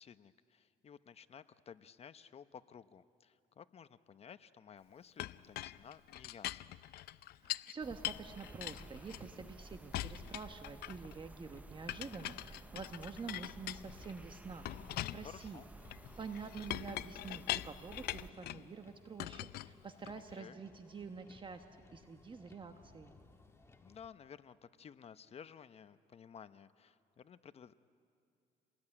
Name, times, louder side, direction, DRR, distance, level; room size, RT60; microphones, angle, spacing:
voice 1, 0.0-6.8 15.2-15.7 20.1-20.6 23.8-27.9, left 7 dB, 35° left, 12 dB, 0.8 m, -55 dB
Chink clink, 5.2-7.7 8.0-9.5 9.9-11.2 11.9-14.2 14.7-18.7 19.2-20.3, left 14 dB, 70° left, 0.5 m, -43 dB
voice 2, 7.4-15.6 16.2-21.6 21.9-23.1, right 5 dB, 30° right, 6 dB, 1.2 m, -47 dB
sound 1, 7.8-18.3, right 2 dB, 10° right, 0.6 m, -54 dB
Motor vehicle (road), 8.0-24.1, left 3 dB, 15° left, 1.6 m, -64 dB
28.0 x 19.5 x 9.9 m, 2.5 s
cardioid pair, 110°, 17 cm